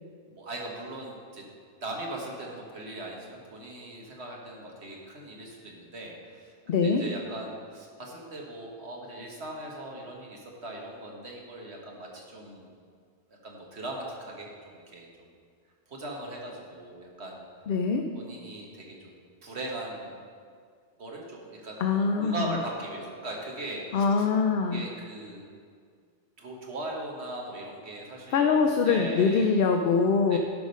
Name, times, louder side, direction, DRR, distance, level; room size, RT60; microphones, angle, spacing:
voice 1, 0.3-1.4 1.8-6.5 6.8-12.7 13.4-15.3 15.9-17.4 18.1-20.2 21.0-24.2 24.7-25.4 26.4-28.6 28.8-29.5 30.3-30.4, right 1 dB, 70° right, -1 dB, 1.6 m, -39 dB
voice 2, 6.7-7.0 17.7-18.0 21.8-22.4 23.9-24.8 28.3-30.4, left 5 dB, 65° left, 4 dB, 0.7 m, -23 dB
11.0 x 4.9 x 5.4 m, 2.1 s
omnidirectional pair, 1.1 m